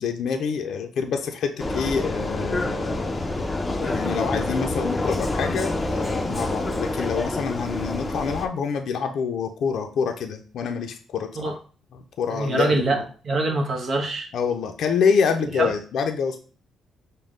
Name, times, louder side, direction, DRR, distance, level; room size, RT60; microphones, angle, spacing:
voice 1, 0.0-3.2 3.8-11.6 11.9-13.0 14.3-16.4, left 6 dB, 70° left, 5 dB, 0.5 m, -26 dB
Vehicle, 1.6-8.5, left 2 dB, 20° left, 0.6 m, -27 dB
voice 2, 12.3-13.0 13.3-14.3 15.6-15.7, right 2 dB, 50° right, 2 dB, 0.9 m, -24 dB
5.2 x 2.2 x 3.7 m, 0.39 s
cardioid pair, 90°, 0 cm